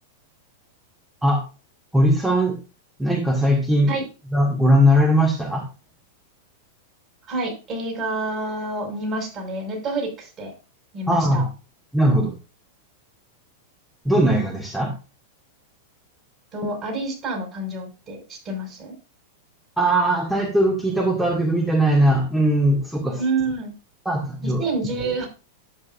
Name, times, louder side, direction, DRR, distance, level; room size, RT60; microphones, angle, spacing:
voice 1, 1.9-2.6 3.0-3.9 4.3-5.6 11.1-11.5 11.9-12.3 14.1-14.9 19.8-23.2 24.1-24.6, equal, 5° right, 0 dB, 1.9 m, -19 dB
voice 2, 7.3-10.5 10.9-11.4 16.5-18.9 23.2-23.7 24.4-25.3, right 2 dB, 30° right, 1 dB, 5.7 m, -28 dB
10.5 x 8.2 x 2.5 m, 0.31 s
figure-of-eight pair, 95°, 0 cm